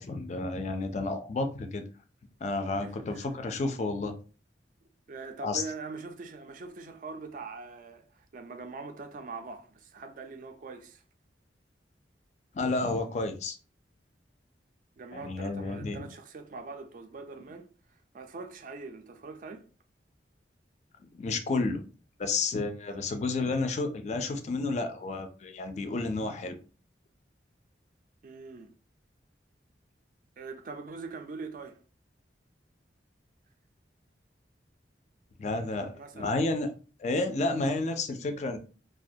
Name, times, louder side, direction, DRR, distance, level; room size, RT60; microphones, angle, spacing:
voice 1, 0.0-1.8 2.4-4.1 5.4-5.6 12.5-13.6 15.1-16.1 21.2-21.8 22.2-26.6 35.4-36.7 37.0-38.6, left 3 dB, 40° left, 0.3 m, -31 dB
voice 2, 2.8-3.3 5.1-11.0 15.0-19.7 22.9-23.0 28.2-28.7 30.4-31.8 35.9-36.4, right 4 dB, 45° right, 0.3 m, -43 dB
2.3 x 2.1 x 2.6 m
head